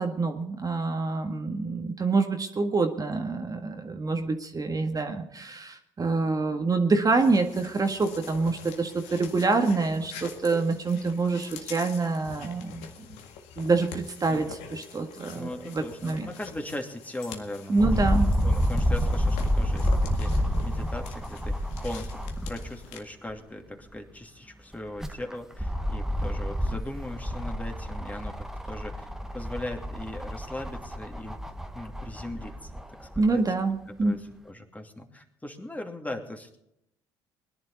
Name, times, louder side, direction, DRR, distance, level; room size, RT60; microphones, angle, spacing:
voice 1, 0.0-12.9 13.6-16.3 17.7-18.3 33.2-34.1, right 3 dB, 30° right, 4 dB, 1.7 m, -26 dB
sound 1, 7.2-23.0, left 7 dB, 75° left, 1.9 m, -45 dB
voice 2, 15.3-29.1 29.3-31.4 31.7-33.5 33.9-36.6, left 1 dB, 10° left, 3 dB, 2.6 m, -39 dB
sound 2, 17.8-22.8 23.3-23.4 24.7-33.3 34.0-34.1, equal, 5° right, 1.3 m, -29 dB
21.0 x 11.0 x 4.1 m, 0.77 s
hypercardioid pair, 55°, 12 cm